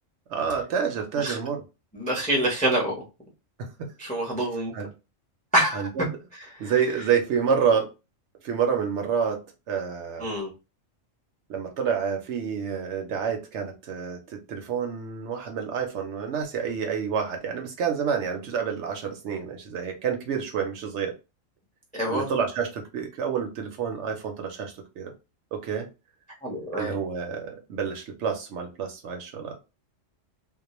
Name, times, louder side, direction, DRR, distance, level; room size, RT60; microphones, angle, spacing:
voice 1, 0.3-1.6 3.6-3.9 4.7-4.9 5.7-6.0 6.6-7.9 8.4-9.4 9.7-10.3 11.5-21.1 22.1-25.1 25.5-25.9 26.7-29.6, right 7 dB, 70° right, 4 dB, 0.8 m, -28 dB
voice 2, 1.9-2.9 4.0-4.7 5.5-5.8 6.5-6.8 10.2-10.5 21.9-22.3 26.4-27.0, right 1 dB, 10° left, -2 dB, 0.5 m, -26 dB
2.3 x 2.1 x 2.9 m, 0.28 s
omnidirectional pair, 1.3 m